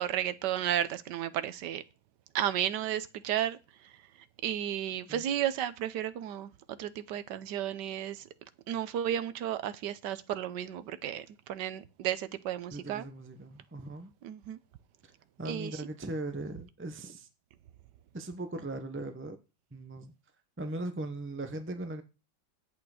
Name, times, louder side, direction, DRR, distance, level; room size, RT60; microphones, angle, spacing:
voice 1, 0.0-1.8 2.3-3.6 4.4-8.2 8.7-13.0 14.2-14.6 15.5-15.7, right 11 dB, 70° right, 1.3 m, -33 dB
voice 2, 12.7-14.1 15.0-15.1 15.4-17.3 18.1-19.4 19.7-20.1 20.6-22.0, right 2 dB, 15° right, 0.4 m, -39 dB
9.7 x 8.5 x 4.9 m
omnidirectional pair, 2.1 m